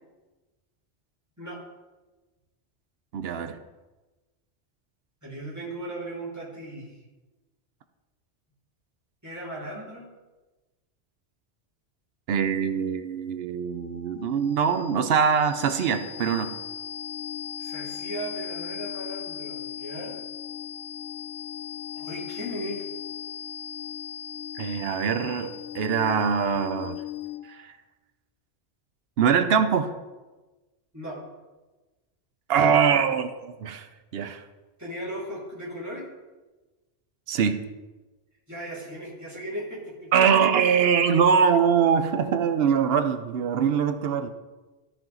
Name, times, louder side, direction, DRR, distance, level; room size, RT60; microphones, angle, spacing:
voice 1, 3.1-3.6 12.3-16.6 24.6-27.0 27.6-27.7 29.2-29.9 32.5-33.9 34.1-34.4 37.3-37.6 40.1-44.3, right 7 dB, 65° right, 9 dB, 0.8 m, -23 dB
voice 2, 5.2-7.0 9.2-10.1 17.6-20.2 21.9-22.9 30.9-31.2 34.8-36.1 38.5-40.1 40.6-40.8, right 1 dB, 15° right, -7 dB, 2.5 m, -37 dB
sound 1, 13.8-27.7, left 10 dB, 75° left, 0.8 m, -38 dB
13.0 x 4.5 x 3.8 m, 1.2 s
omnidirectional pair, 1.1 m